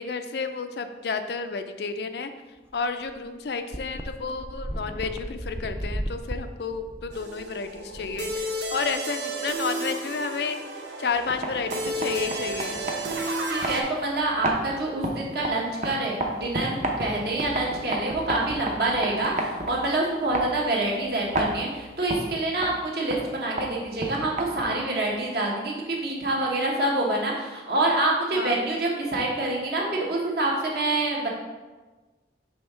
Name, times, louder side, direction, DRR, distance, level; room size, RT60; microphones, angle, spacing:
voice 1, 0.0-2.3 2.7-10.6 11.0-12.8 28.3-28.7, left 4 dB, 65° left, 8 dB, 0.4 m, -31 dB
sound 1, 2.7-2.8 3.1-3.2 3.7-8.9, equal, 15° right, 0.4 m, -35 dB
sound 2, 7.1-13.8, right 1 dB, 80° right, 0.8 m, -32 dB
sound 3, 11.1-24.9, right 1 dB, 40° right, 0.8 m, -33 dB
voice 2, 13.5-31.3, right 2 dB, 60° right, -2 dB, 1.4 m, -26 dB
5.6 x 3.6 x 5.5 m, 1.2 s
head